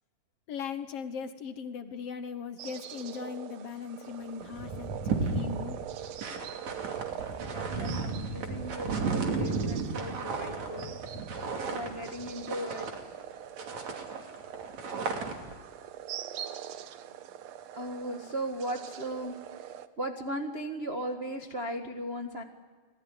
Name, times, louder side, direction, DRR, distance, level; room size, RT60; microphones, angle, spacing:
voice 1, 0.5-5.8, left 6 dB, 60° left, 9 dB, 1.6 m, -39 dB
sound 1, 2.6-19.9, right 10 dB, 70° right, 1.7 m, -44 dB
sound 2, 4.1-4.2 4.4-13.3 13.6-15.6, right 4 dB, 50° right, 3.9 m, -34 dB
voice 2, 7.4-11.0 11.7-12.9 17.7-19.4 20.0-22.4, right 1 dB, 85° right, 3 dB, 0.5 m, -37 dB
28.0 x 19.0 x 9.9 m, 1.5 s
omnidirectional pair, 4.1 m